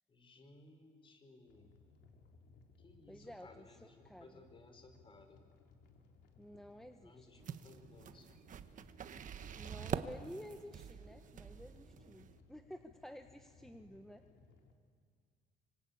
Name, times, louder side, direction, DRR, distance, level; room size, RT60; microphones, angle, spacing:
voice 1, 0.1-1.7 2.8-5.4 7.0-8.4, left 2 dB, 30° left, 6 dB, 4.9 m, -60 dB
sound 1, 1.5-14.7, left 4 dB, 75° left, 3.5 m, -64 dB
voice 2, 3.1-3.8 4.0-4.4 6.4-7.5 9.6-14.2, equal, ahead, 6 dB, 1.2 m, -52 dB
sound 2, 7.4-12.4, right 8 dB, 50° right, 1.3 m, -45 dB
26.0 x 25.5 x 8.8 m, 2.1 s
cardioid pair, 110°, 17 cm